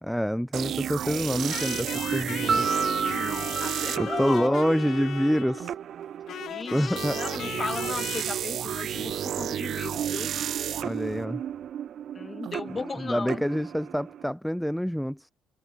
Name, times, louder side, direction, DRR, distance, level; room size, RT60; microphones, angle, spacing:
voice 1, 0.0-2.7 4.0-5.7 6.7-7.2 10.8-11.4 13.0-15.3, equal, ahead, 1.7 m, -27 dB
sound 1, 0.5-14.2, right 10 dB, 65° right, 2.2 m, -33 dB
sound 2, 1.5-5.8 6.3-8.2, left 10 dB, 70° left, 0.7 m, -38 dB
voice 2, 2.4-4.6 6.5-10.3 12.1-13.4, left 4 dB, 30° left, 3.1 m, -36 dB
Piano, 2.5-5.3, right 6 dB, 45° right, 0.6 m, -30 dB
cardioid pair, 90°, 0 cm